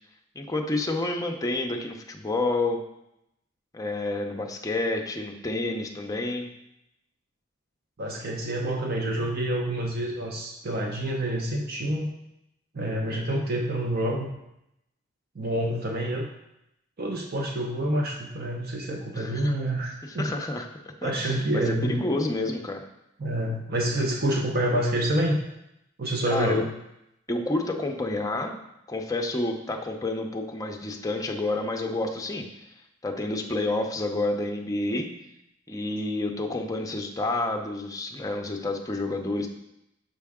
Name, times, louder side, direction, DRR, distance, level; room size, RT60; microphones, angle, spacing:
voice 1, 0.3-2.8 3.7-6.5 19.2-19.5 20.0-20.7 21.0-22.8 26.3-26.6 27.3-28.5 28.9-32.5 33.0-35.1 35.7-39.5, left 2 dB, 20° left, 2 dB, 0.6 m, -29 dB
voice 2, 8.0-12.1 12.7-14.3 15.3-16.3 17.0-20.3 21.0-22.0 23.2-25.4 26.0-26.7, right 1 dB, 50° right, 1 dB, 0.7 m, -27 dB
5.7 x 5.2 x 3.6 m, 0.84 s
head